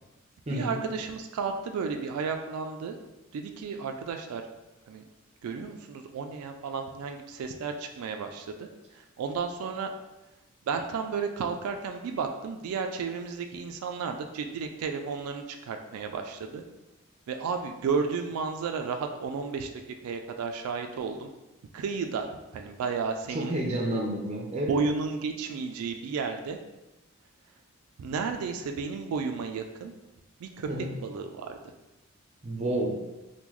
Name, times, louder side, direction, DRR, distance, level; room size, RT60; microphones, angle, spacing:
voice 1, 0.5-3.0 3.3-4.4 4.9-5.0 5.4-8.7 8.9-9.9 10.7-16.6 17.3-19.7 20.0-21.3 21.7-23.5 24.7-26.6 28.0-29.9 30.4-30.7 31.0-31.6, right 5 dB, 90° right, 7 dB, 0.3 m, -32 dB
voice 2, 23.3-24.7 30.7-30.9 32.4-32.9, right 1 dB, 30° right, -1 dB, 0.5 m, -30 dB
3.6 x 2.2 x 3.0 m, 1.0 s
head